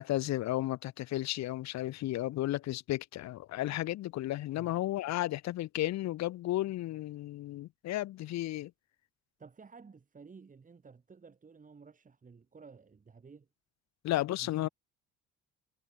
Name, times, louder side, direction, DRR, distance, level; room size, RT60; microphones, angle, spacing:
voice 1, 0.0-8.7 14.0-14.7, left 15 dB, 65° left, 1.0 m, -33 dB
voice 2, 9.4-13.5 14.4-14.7, right 5 dB, 25° right, 3.4 m, -54 dB
cardioid pair, 110°, 29 cm